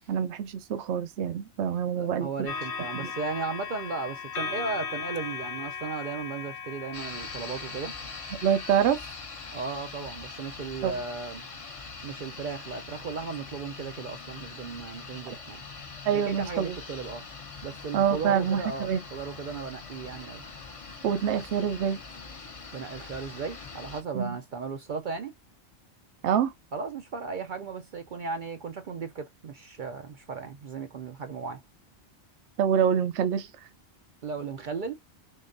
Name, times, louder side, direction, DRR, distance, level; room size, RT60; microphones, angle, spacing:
voice 1, 0.1-2.3 2.9-3.1 8.4-9.0 10.8-11.0 15.3-15.4 16.0-16.8 17.9-19.0 21.0-22.0 24.1-24.4 26.2-26.5 32.6-33.5, right 8 dB, 80° right, 0.9 m, -26 dB
voice 2, 2.0-7.9 9.5-11.4 12.0-15.6 16.1-17.2 17.6-20.4 22.7-25.3 26.7-31.6 34.2-35.0, right 4 dB, 55° right, 0.6 m, -36 dB
sound 1, 2.5-9.9 10.7-10.9, left 6 dB, 60° left, 0.9 m, -38 dB
sound 2, 6.9-24.0, left 4 dB, 35° left, 0.7 m, -43 dB
3.8 x 3.6 x 2.5 m
omnidirectional pair, 1.2 m